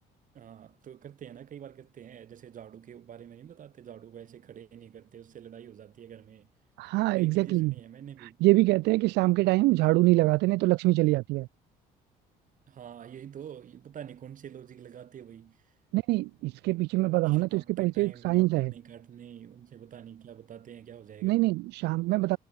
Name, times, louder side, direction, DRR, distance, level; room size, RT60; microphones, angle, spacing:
voice 1, 0.3-6.5 7.1-8.4 12.7-15.7 17.2-21.4, right 9 dB, 50° right, 7.5 m, -47 dB
voice 2, 6.8-7.7 8.4-11.5 15.9-18.7 21.2-22.4, right 20 dB, 85° right, 0.6 m, -24 dB
cardioid pair, 110°, 17 cm